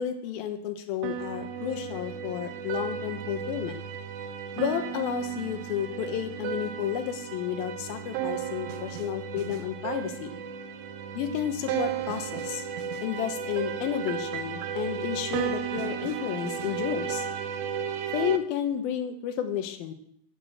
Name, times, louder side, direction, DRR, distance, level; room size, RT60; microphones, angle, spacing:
voice 1, 0.0-3.8 4.6-10.4 11.2-12.6 13.0-17.3 18.1-19.9, left 9 dB, 75° left, 7 dB, 2.8 m, -31 dB
sound 1, 1.0-18.4, right 8 dB, 75° right, 2.2 m, -34 dB
10.5 x 6.7 x 7.9 m, 0.72 s
omnidirectional pair, 4.4 m